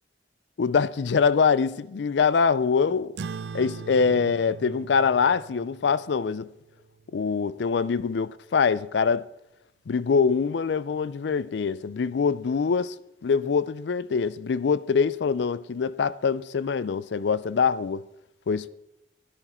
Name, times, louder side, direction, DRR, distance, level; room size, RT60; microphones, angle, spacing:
voice 1, 0.6-3.1 3.5-6.5 7.1-9.2 9.9-12.9 13.2-18.1 18.5-18.7, left 5 dB, 75° left, 0.4 m, -24 dB
sound 1, 3.2-8.0, right 5 dB, 70° right, 0.4 m, -41 dB
12.0 x 11.5 x 4.3 m
head